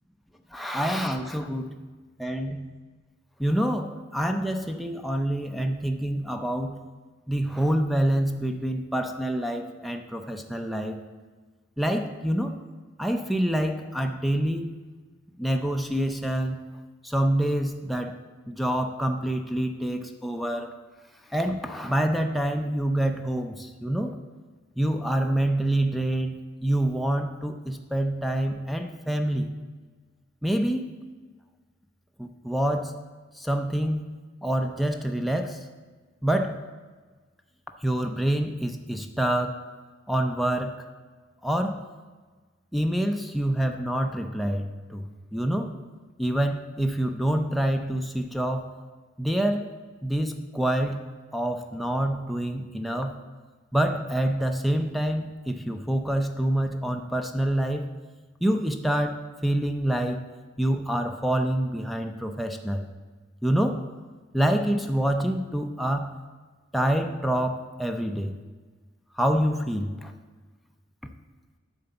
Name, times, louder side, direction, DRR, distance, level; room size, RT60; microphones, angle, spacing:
voice 1, 0.5-1.7 2.2-2.7 3.4-6.8 7.3-11.0 11.8-12.5 13.0-14.7 15.4-16.6 17.0-18.2 18.5-20.7 21.3-24.2 24.8-29.5 30.4-30.8 32.2-32.9 33.4-34.0 34.4-35.6 36.2-36.6 37.8-39.6 40.1-40.8 41.4-41.8 42.7-45.8 46.2-48.7 49.2-49.7 50.0-51.1 51.3-53.2 53.7-57.9 58.4-60.2 60.6-62.9 63.4-63.8 64.3-66.1 66.7-68.4 69.2-70.1, right 1 dB, ahead, 5 dB, 0.5 m, -26 dB
10.0 x 4.0 x 6.9 m, 1.4 s
head